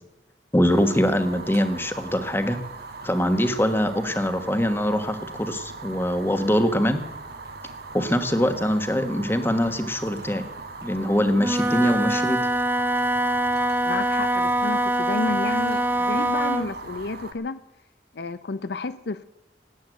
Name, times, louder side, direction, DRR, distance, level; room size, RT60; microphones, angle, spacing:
voice 1, 0.5-2.6 3.0-7.0 7.9-10.4 10.8-12.4, equal, 15° left, 8 dB, 1.4 m, -23 dB
Fire, 0.7-17.3, right 3 dB, 60° right, 1.7 m, -39 dB
Wind instrument woodwind instrument, 11.3-16.7, right 1 dB, 10° right, 0.7 m, -24 dB
voice 2, 13.8-17.6 18.1-19.2, left 3 dB, 65° left, 13 dB, 0.6 m, -31 dB
18.0 x 9.4 x 7.9 m, 0.95 s
head